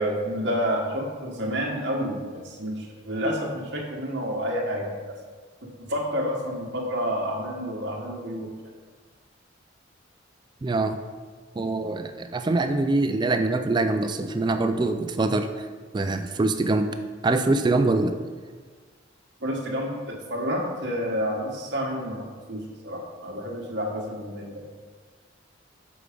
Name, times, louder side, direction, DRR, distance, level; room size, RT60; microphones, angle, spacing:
voice 1, 0.0-4.9 5.8-8.5 19.4-24.6, equal, 60° right, -2 dB, 1.5 m, -29 dB
voice 2, 10.6-11.0 11.6-15.7 15.9-16.9 17.2-18.1, right 2 dB, 25° right, 8 dB, 0.3 m, -24 dB
6.9 x 4.7 x 5.1 m, 1.5 s
head